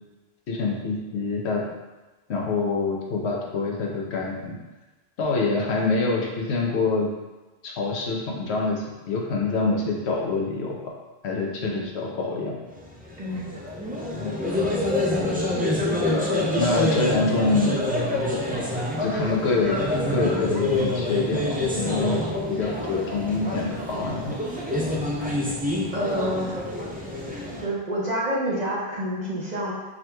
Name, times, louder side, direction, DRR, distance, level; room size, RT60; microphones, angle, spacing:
voice 1, 0.5-1.6 2.3-4.6 5.2-7.1 7.6-10.9 11.2-12.5 14.1-14.4 16.6-17.8 19.0-19.8 20.1-22.2 22.5-24.3, left 3 dB, 85° left, -1 dB, 1.0 m, -26 dB
sound 1, 12.7-27.6, left 1 dB, 15° right, 0.4 m, -26 dB
voice 2, 13.2-13.6 22.2-22.4 25.9-26.6 27.6-29.7, equal, 45° right, -5 dB, 0.7 m, -28 dB
5.0 x 2.9 x 2.2 m, 1.1 s
omnidirectional pair, 1.1 m